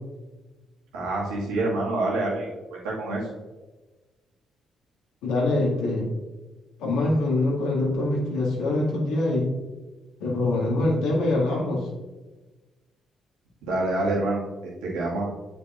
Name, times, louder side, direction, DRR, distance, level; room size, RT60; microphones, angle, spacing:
voice 1, 0.9-3.4 13.6-15.3, right 2 dB, 80° right, -4 dB, 1.9 m, -27 dB
voice 2, 5.2-6.1 6.8-9.5 10.2-11.9, left 2 dB, 80° left, -3 dB, 2.0 m, -24 dB
8.2 x 6.7 x 2.5 m, 1.2 s
hypercardioid pair, 45°, 0 cm